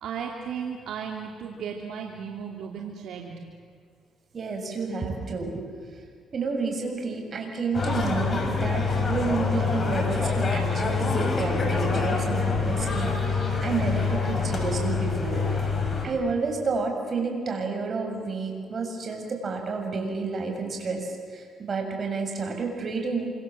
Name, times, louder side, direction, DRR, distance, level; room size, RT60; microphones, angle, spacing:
voice 1, 0.0-3.3, right 7 dB, 75° right, 0 dB, 3.1 m, -35 dB
voice 2, 4.3-5.5 6.3-15.4 16.0-23.3, right 4 dB, 45° right, 2 dB, 7.1 m, -30 dB
sound 1, 7.7-16.0, left 4 dB, 35° left, 6.2 m, -26 dB
28.0 x 26.5 x 7.7 m, 2.1 s
cardioid pair, 90°, 0 cm